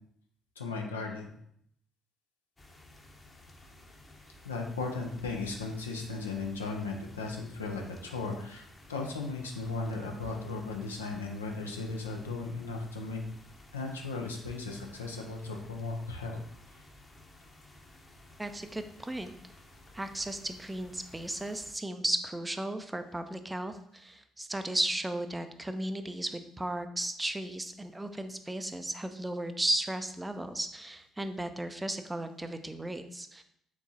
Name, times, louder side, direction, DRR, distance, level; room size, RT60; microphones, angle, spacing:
voice 1, 0.6-1.3 4.4-13.2 13.7-16.4 16.7-16.8, left 3 dB, 85° left, 1 dB, 0.5 m, -36 dB
sound 1, 2.6-21.7, left 1 dB, 25° left, 0.8 m, -55 dB
voice 2, 18.4-19.3 19.9-33.4, right 1 dB, 15° right, 9 dB, 0.4 m, -35 dB
4.6 x 3.7 x 2.8 m, 0.69 s
figure-of-eight pair, 50°, 0 cm